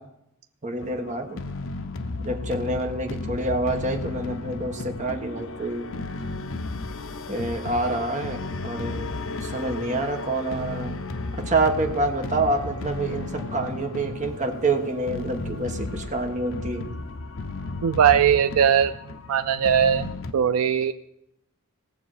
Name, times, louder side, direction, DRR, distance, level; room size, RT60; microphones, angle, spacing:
voice 1, 0.6-1.4 2.2-5.9 7.3-9.1 9.4-11.0 11.4-16.8, right 2 dB, 35° right, 3 dB, 1.3 m, -27 dB
sound 1, 0.8-20.3, left 3 dB, 60° left, 0.7 m, -34 dB
voice 2, 17.8-18.9 19.3-20.9, right 8 dB, 75° right, 9 dB, 0.4 m, -20 dB
18.0 x 7.2 x 4.9 m, 0.84 s
head